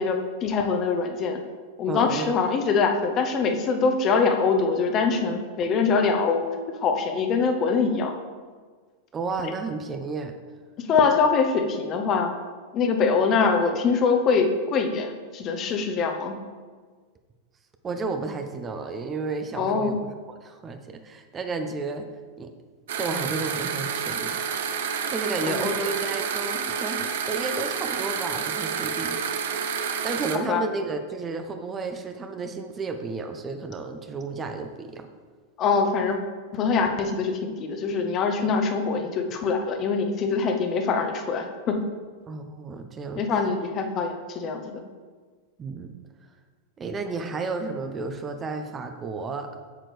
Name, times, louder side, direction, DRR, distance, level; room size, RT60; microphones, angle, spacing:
voice 1, 0.0-1.4 1.8-6.5 6.8-8.1 10.9-12.3 12.7-16.4 19.5-19.9 25.4-25.6 30.5-30.6 35.6-36.2 36.5-41.8 43.2-44.8, left 5 dB, 30° left, 5 dB, 0.9 m, -23 dB
voice 2, 1.9-2.3 9.1-10.3 17.8-20.0 20.4-22.1 22.4-22.5 23.0-24.4 25.1-29.2 30.0-35.1 42.3-43.3 45.6-46.0 46.8-49.5, right 3 dB, 20° right, 6 dB, 0.6 m, -32 dB
sound 1, 22.9-30.4, right 6 dB, 55° right, 0.6 m, -29 dB
8.4 x 7.6 x 3.3 m, 1.5 s
figure-of-eight pair, 90°, 0 cm